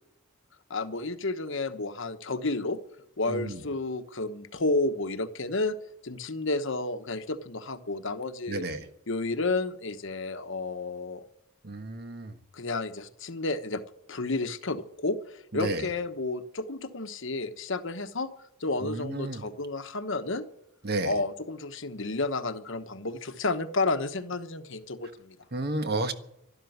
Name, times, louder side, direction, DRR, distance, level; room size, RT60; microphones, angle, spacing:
voice 1, 0.7-2.8 3.2-5.8 6.0-8.6 9.1-11.2 12.5-13.8 14.1-18.3 18.6-20.4 21.0-25.4, left 2 dB, 65° left, 9 dB, 1.2 m, -31 dB
voice 2, 3.3-3.6 8.5-8.9 11.6-12.3 15.5-15.8 18.8-19.4 20.8-21.1 25.5-26.1, right 2 dB, 50° right, 8 dB, 1.4 m, -31 dB
12.0 x 12.0 x 9.5 m, 0.79 s
head